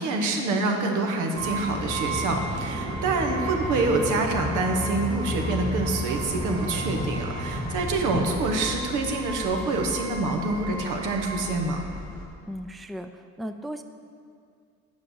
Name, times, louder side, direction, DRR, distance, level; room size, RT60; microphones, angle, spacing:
voice 1, 0.0-11.8, right 3 dB, 90° right, 3 dB, 1.1 m, -26 dB
sound 1, 1.4-12.3, equal, 65° right, 1.7 m, -32 dB
voice 2, 12.5-13.8, equal, ahead, 8 dB, 0.3 m, -36 dB
8.5 x 5.3 x 6.4 m, 2.3 s
cardioid pair, 90°, 30 cm